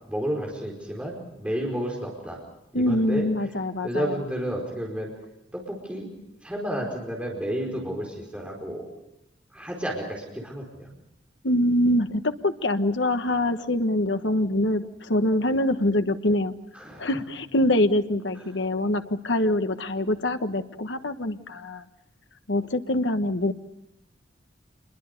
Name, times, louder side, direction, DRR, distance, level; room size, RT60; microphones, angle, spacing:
voice 1, 0.1-2.4 2.7-3.5 3.8-5.1 5.5-6.1 6.4-8.9 9.5-10.9 16.7-17.1, equal, 5° right, -1 dB, 4.7 m, -31 dB
voice 2, 2.7-4.1 11.4-16.5 17.0-21.8 22.5-23.5, left 1 dB, 75° left, 8 dB, 1.3 m, -24 dB
27.5 x 22.0 x 6.7 m, 0.87 s
head